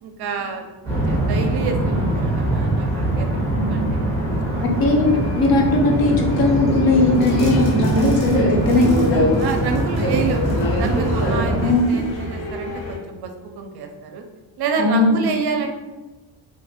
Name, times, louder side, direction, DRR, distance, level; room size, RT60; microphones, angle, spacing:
voice 1, 0.0-4.2 4.5-4.7 9.4-10.4 10.8-14.2 14.6-15.7, right 5 dB, 60° right, 4 dB, 0.5 m, -28 dB
sound 1, 0.8-11.7, right 1 dB, 5° left, 1.4 m, -22 dB
voice 2, 3.6-3.9 4.8-9.3 11.5-12.0 14.8-15.2, left 2 dB, 55° left, 1 dB, 0.7 m, -18 dB
Subway metro underground, 5.0-13.0, left 1 dB, 75° left, 0.9 m, -27 dB
sound 2, 7.1-12.2, right 1 dB, 15° right, 1.0 m, -32 dB
3.0 x 2.4 x 3.5 m, 1.2 s
cardioid pair, 150°, 45 cm